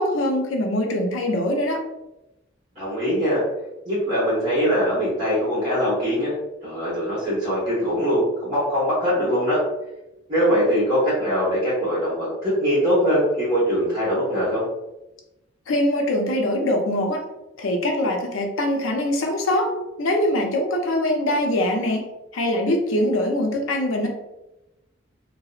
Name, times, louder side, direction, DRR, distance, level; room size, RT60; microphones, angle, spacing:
voice 1, 0.0-1.8 15.7-17.2 17.6-19.7 20.0-22.1 22.3-24.1, left 1 dB, 85° left, 2 dB, 0.5 m, -23 dB
voice 2, 2.7-3.4 3.8-6.3 6.6-9.6 10.3-14.6, equal, 35° right, -11 dB, 1.1 m, -22 dB
2.7 x 2.0 x 2.4 m, 0.95 s
head